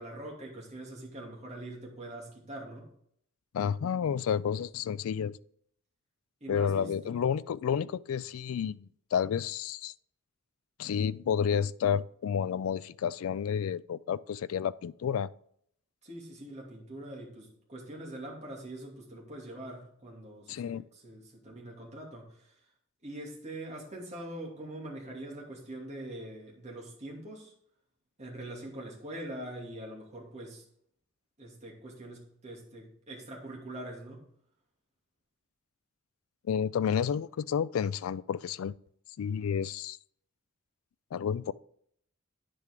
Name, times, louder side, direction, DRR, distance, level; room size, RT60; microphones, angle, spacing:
voice 1, 0.0-2.9 6.4-6.9 16.0-22.6 23.0-27.5 28.2-30.6 31.4-34.2, right 1 dB, 35° right, 2.8 m, -43 dB
voice 2, 3.5-5.4 6.5-9.9 10.8-15.3 20.5-20.8 36.5-38.7 39.2-40.0 41.1-41.5, left 7 dB, 80° left, 0.3 m, -30 dB
9.7 x 7.6 x 3.8 m
head